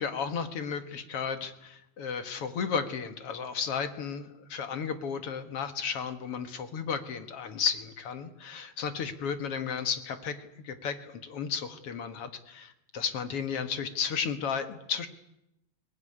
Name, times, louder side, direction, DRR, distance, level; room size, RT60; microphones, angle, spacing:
voice 1, 0.0-15.1, left 6 dB, 55° left, 9 dB, 2.2 m, -33 dB
22.5 x 19.0 x 9.9 m, 0.85 s
omnidirectional pair, 3.4 m